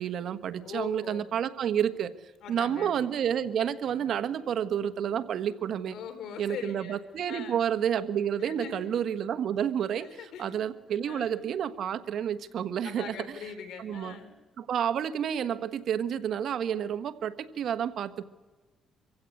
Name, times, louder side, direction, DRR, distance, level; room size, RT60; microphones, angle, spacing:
voice 1, 0.0-2.1 2.5-6.0 6.4-13.1 13.8-14.1 14.6-18.2, right 9 dB, 65° right, 11 dB, 1.3 m, -30 dB
voice 2, 0.6-1.3 2.4-3.0 5.9-7.0 7.3-7.6 8.4-8.8 10.0-10.7 11.0-11.3 12.8-14.3, left 7 dB, 80° left, 8 dB, 3.7 m, -42 dB
25.0 x 16.0 x 8.5 m, 1.3 s
cardioid pair, 90°, 0 cm